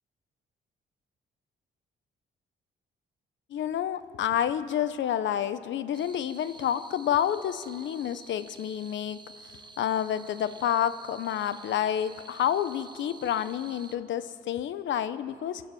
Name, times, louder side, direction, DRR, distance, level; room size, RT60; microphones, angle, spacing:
voice 1, 3.5-15.6, left 10 dB, 70° left, 14 dB, 0.9 m, -29 dB
sound 1, 5.9-14.0, right 4 dB, 20° right, 1.0 m, -50 dB
22.5 x 12.5 x 9.2 m, 2.2 s
cardioid pair, 90°, 20 cm